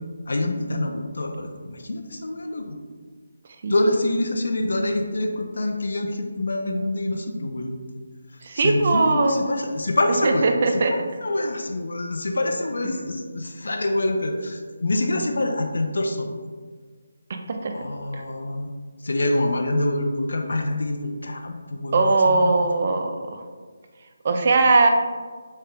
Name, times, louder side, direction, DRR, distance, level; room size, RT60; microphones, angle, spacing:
voice 1, 0.3-2.8 3.7-7.8 8.5-10.8 11.2-16.3 17.7-18.7 19.0-22.5, left 1 dB, 70° left, 3 dB, 0.4 m, -26 dB
voice 2, 8.4-9.4 10.2-10.9 17.5-17.7 18.1-18.2 21.9-23.5 24.2-24.9, right 3 dB, 40° right, 4 dB, 0.3 m, -20 dB
3.2 x 2.8 x 3.3 m, 1.5 s
figure-of-eight pair, 170°, 0 cm